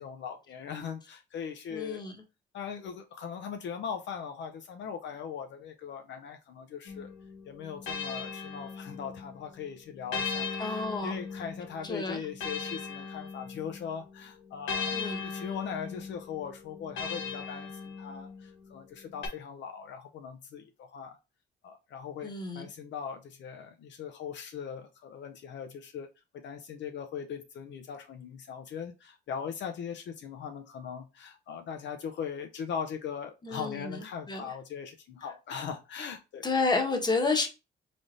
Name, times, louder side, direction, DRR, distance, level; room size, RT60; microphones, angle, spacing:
voice 1, 0.0-2.0 2.5-7.1 7.5-14.9 15.2-21.2 21.6-26.1 26.4-36.4, left 7 dB, 65° left, 0.5 m, -40 dB
voice 2, 1.7-2.1 10.6-11.2 11.8-12.2 14.9-15.2 22.2-22.7 33.4-34.0 34.3-34.5 36.4-37.5, left 3 dB, 20° left, 1.0 m, -30 dB
sound 1, 6.9-9.3 10.1-13.9 14.7-18.4 19.2-19.3, left 5 dB, 90° left, 1.1 m, -38 dB
3.9 x 3.4 x 2.4 m
cardioid pair, 90°, 20 cm